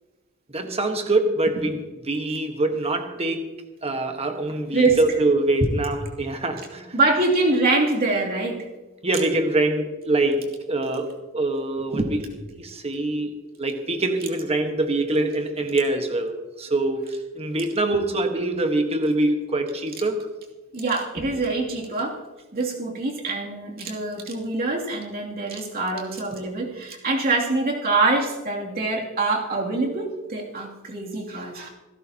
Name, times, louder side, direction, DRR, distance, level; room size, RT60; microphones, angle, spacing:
voice 1, 0.5-3.4 3.8-6.9 9.0-20.3, right 2 dB, 30° right, 5 dB, 1.4 m, -24 dB
voice 2, 6.9-8.7 20.7-22.2 22.5-31.7, right 3 dB, 45° right, -2 dB, 2.8 m, -24 dB
26.5 x 12.0 x 2.9 m, 1.2 s
head